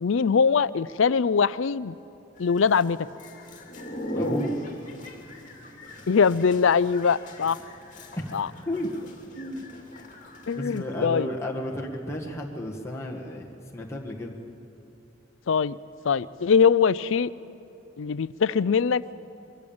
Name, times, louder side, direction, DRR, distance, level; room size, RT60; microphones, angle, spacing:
voice 1, 0.0-2.0 2.4-3.0 6.1-7.6 8.3-8.5 10.5-11.3 15.5-15.8 16.0-17.3 18.0-19.0, left 6 dB, 65° left, 18 dB, 0.4 m, -22 dB
sound 1, 2.4-10.8, left 1 dB, 35° left, 2.6 m, -38 dB
voice 2, 4.1-4.5 8.2-8.3 8.7-8.9 9.3-9.6 10.5-14.4, left 1 dB, 15° left, -2 dB, 1.6 m, -32 dB
22.5 x 15.0 x 8.7 m, 2.9 s
head